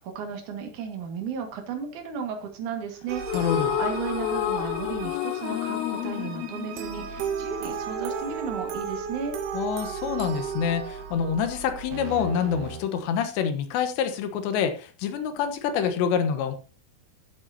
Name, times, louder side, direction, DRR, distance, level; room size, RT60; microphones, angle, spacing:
voice 1, 0.0-9.4, right 6 dB, 50° right, 4 dB, 2.7 m, -34 dB
sound 1, 3.1-12.8, right 6 dB, 85° right, 4.0 m, -35 dB
sound 2, 3.2-7.6, left 14 dB, 90° left, 2.3 m, -30 dB
voice 2, 3.3-3.8 9.5-16.5, left 7 dB, 75° left, 8 dB, 3.3 m, -27 dB
15.0 x 7.9 x 2.8 m, 0.36 s
omnidirectional pair, 5.4 m